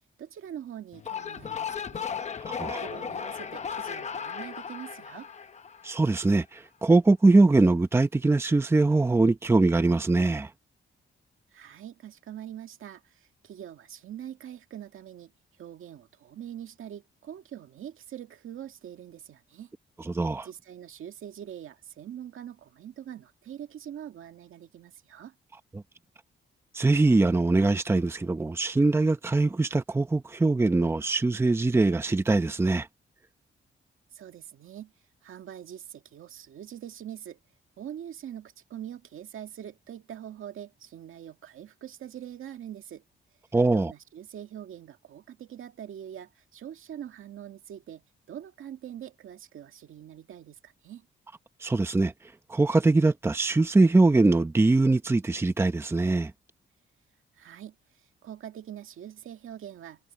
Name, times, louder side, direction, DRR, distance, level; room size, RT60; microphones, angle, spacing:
voice 1, 0.2-2.1 2.4-5.3 11.5-15.3 15.6-19.7 20.4-25.4 34.1-34.9 35.2-37.4 37.8-43.0 43.7-51.1 57.3-60.1, right 10 dB, 80° right, 2.0 m, -43 dB
sound 1, 0.9-6.3, left 7 dB, 35° left, 0.8 m, -36 dB
voice 2, 5.8-10.5 20.1-20.5 26.7-32.9 43.5-43.9 51.6-52.1 52.5-56.3, right 3 dB, 10° right, 0.7 m, -22 dB
wide cardioid pair, 170°, 21 cm